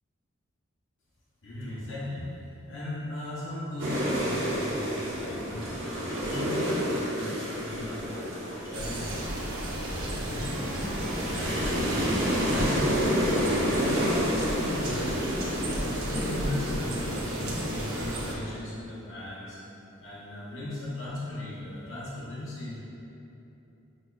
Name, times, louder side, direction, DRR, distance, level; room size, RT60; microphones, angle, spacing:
voice 1, 1.4-2.3 2.7-8.0 8.3-9.3 9.7-10.9 11.2-15.2 15.7-19.6 20.0-22.8, left 1 dB, 65° left, -7 dB, 0.7 m, -37 dB
sound 1, 3.8-18.1, equal, 65° right, 1.0 m, -30 dB
sound 2, 8.7-18.4, right 1 dB, 80° right, 0.7 m, -34 dB
sound 3, 10.3-15.2, equal, 5° right, 0.5 m, -41 dB
6.2 x 2.2 x 2.3 m, 2.9 s
head